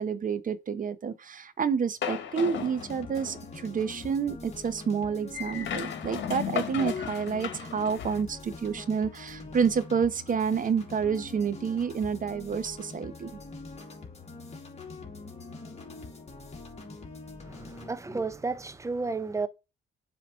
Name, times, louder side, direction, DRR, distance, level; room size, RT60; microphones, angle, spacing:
voice 1, 0.0-13.4, right 6 dB, 45° right, 0.9 m, -29 dB
sound 1, 2.0-3.5 5.3-8.2, left 9 dB, 65° left, 1.5 m, -35 dB
sound 2, 2.8-17.9, left 3 dB, 35° left, 2.6 m, -44 dB
voice 2, 17.4-19.5, right 3 dB, 15° right, 0.8 m, -32 dB
7.4 x 3.0 x 5.4 m
cardioid pair, 90°, 20 cm